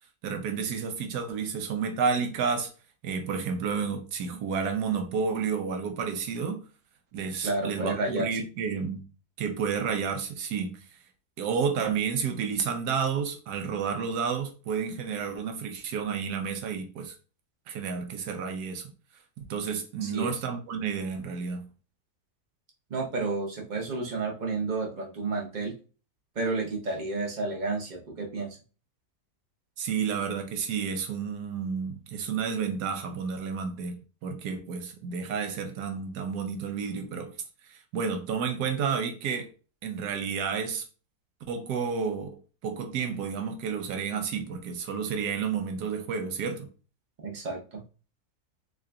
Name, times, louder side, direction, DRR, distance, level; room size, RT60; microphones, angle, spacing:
voice 1, 0.2-2.7 3.0-6.6 7.1-9.0 9.4-10.8 11.4-17.2 17.7-18.9 19.5-21.7 29.8-34.0 34.2-37.3 37.7-39.5 39.8-40.8 41.5-42.4 42.6-46.7, right 6 dB, 80° right, 1.3 m, -31 dB
voice 2, 7.4-8.3 20.0-20.3 22.9-25.7 26.3-28.6 47.2-47.8, right 3 dB, 35° right, 0.8 m, -31 dB
3.8 x 3.7 x 2.2 m
omnidirectional pair, 1.7 m